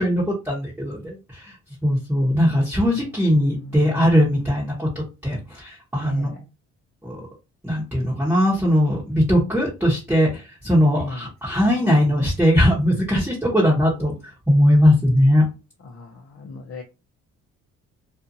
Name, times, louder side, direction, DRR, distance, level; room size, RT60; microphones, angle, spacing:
voice 1, 0.0-1.5 1.8-6.3 7.0-7.2 7.6-14.1 14.5-15.4, equal, 5° right, -6 dB, 1.0 m, -20 dB
voice 2, 3.5-3.8 6.0-6.4 11.0-11.3 15.8-16.8, left 3 dB, 50° left, -1 dB, 0.8 m, -37 dB
2.6 x 2.4 x 2.7 m, 0.29 s
cardioid pair, 90°, 30 cm